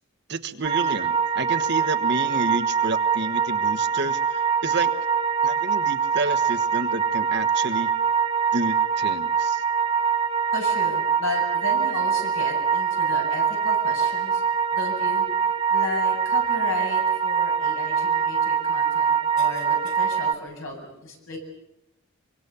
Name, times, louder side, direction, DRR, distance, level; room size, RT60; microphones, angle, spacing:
voice 1, 0.3-4.9 5.4-7.9 8.5-9.6, right 3 dB, 55° right, 10 dB, 1.3 m, -30 dB
sound 1, 0.6-20.3, right 6 dB, 30° right, 1.1 m, -23 dB
voice 2, 10.5-14.4 14.7-15.3 15.7-21.4, left 2 dB, 80° left, 2 dB, 7.5 m, -34 dB
24.5 x 24.5 x 7.0 m, 0.84 s
head